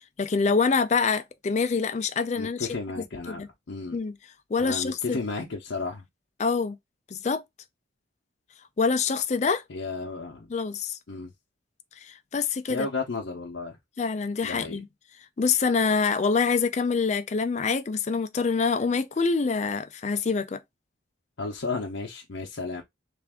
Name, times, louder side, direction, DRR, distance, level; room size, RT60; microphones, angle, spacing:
voice 1, 0.2-2.7 3.0-3.5 3.9-4.1 4.5-5.2 6.4-6.8 7.1-7.4 8.8-9.6 10.5-11.0 12.0-12.9 14.0-14.9 15.4-20.6, left 5 dB, 35° left, 0.4 m, -25 dB
voice 2, 2.4-4.0 4.6-6.0 9.7-10.5 11.1-11.3 12.7-13.8 14.4-14.8 21.4-22.8, left 3 dB, 80° left, 0.7 m, -33 dB
3.4 x 2.5 x 3.5 m
head